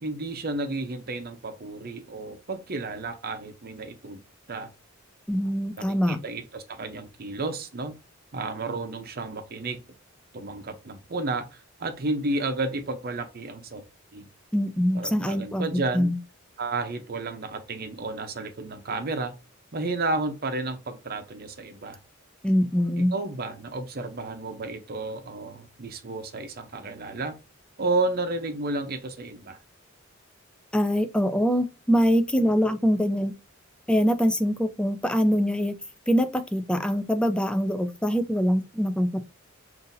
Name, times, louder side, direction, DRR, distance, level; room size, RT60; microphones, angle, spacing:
voice 1, 0.0-4.2 4.5-4.7 5.8-8.0 8.3-9.8 10.3-13.8 14.1-14.3 14.9-16.1 16.6-19.4 19.7-22.0 23.0-27.4 27.8-29.6, right 2 dB, 50° right, 0.7 m, -32 dB
voice 2, 5.3-6.2 14.5-15.6 15.9-16.2 22.4-23.1 30.7-33.3 33.9-35.7 36.1-39.2, equal, 5° left, 0.4 m, -24 dB
5.5 x 2.7 x 2.6 m
head